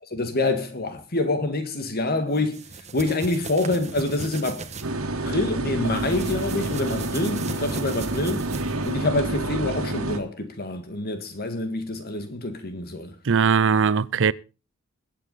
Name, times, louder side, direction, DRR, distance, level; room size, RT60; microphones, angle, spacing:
voice 1, 0.1-2.6 2.9-4.6 5.2-8.4 8.8-13.1, left 2 dB, 45° left, 1.8 m, -26 dB
sound 1, 2.4-4.9 5.9-9.0, right 4 dB, 35° right, 1.3 m, -38 dB
sound 2, 4.8-10.2, right 2 dB, 85° right, 1.9 m, -28 dB
voice 2, 13.3-14.3, right 6 dB, 60° right, 0.6 m, -20 dB
22.0 x 8.4 x 4.1 m
head